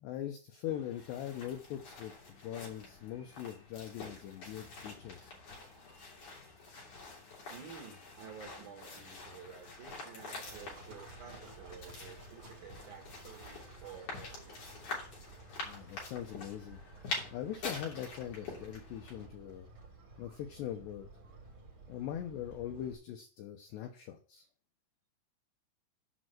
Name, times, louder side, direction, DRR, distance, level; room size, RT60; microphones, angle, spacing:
voice 1, 0.0-5.3 15.6-16.8 17.3-19.7 20.2-21.1 21.9-24.5, left 11 dB, 85° left, 5 dB, 2.4 m, -41 dB
sound 1, 0.7-19.3, left 3 dB, 40° left, 4.0 m, -46 dB
voice 2, 7.5-14.6, right 7 dB, 85° right, 2 dB, 1.7 m, -51 dB
Livestock farm animals working animals, 10.4-22.9, right 3 dB, 25° right, 4.3 m, -54 dB
8.3 x 5.3 x 7.6 m, 0.41 s
omnidirectional pair, 5.9 m